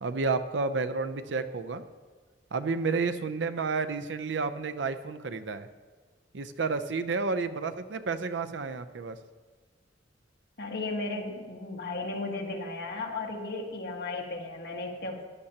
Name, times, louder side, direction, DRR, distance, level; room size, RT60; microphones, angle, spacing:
voice 1, 0.0-1.8 2.5-5.7 6.3-9.2, right 4 dB, 75° right, 9 dB, 0.6 m, -31 dB
voice 2, 10.6-15.2, left 2 dB, 60° left, 0 dB, 1.6 m, -35 dB
15.0 x 11.0 x 2.9 m, 1.5 s
head